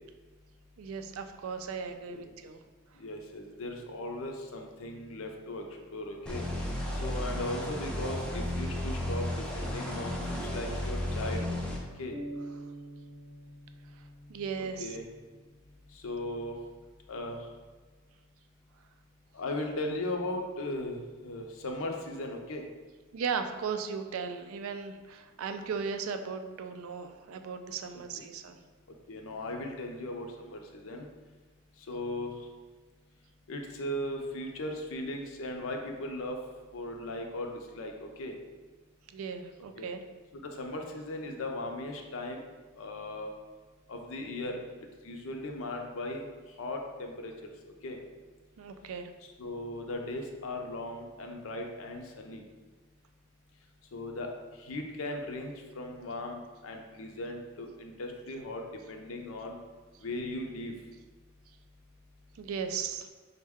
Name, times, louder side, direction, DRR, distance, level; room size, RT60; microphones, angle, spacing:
voice 1, 0.8-2.6 14.3-15.0 23.1-28.6 39.1-40.0 48.6-49.1 62.4-63.1, right 6 dB, 75° right, 7 dB, 0.3 m, -36 dB
voice 2, 3.0-5.6 5.9-6.4 7.0-9.3 9.5-11.5 12.0-12.1 14.8-15.0 15.9-16.6 17.1-17.4 19.3-22.6 27.9-28.0 29.1-31.1 31.9-32.3 33.5-36.4 36.7-38.3 39.7-39.9 40.4-42.4 42.7-43.3 43.9-46.3 46.6-47.3 47.8-48.0 49.4-52.4 53.9-54.3 54.6-59.6 60.0-60.7, left 1 dB, 75° left, 2 dB, 0.5 m, -37 dB
sound 1, 6.3-11.8, left 1 dB, 5° left, 0.4 m, -33 dB
sound 2, 12.1-15.9, right 1 dB, 35° right, 0.6 m, -46 dB
5.2 x 2.1 x 3.5 m, 1.3 s
head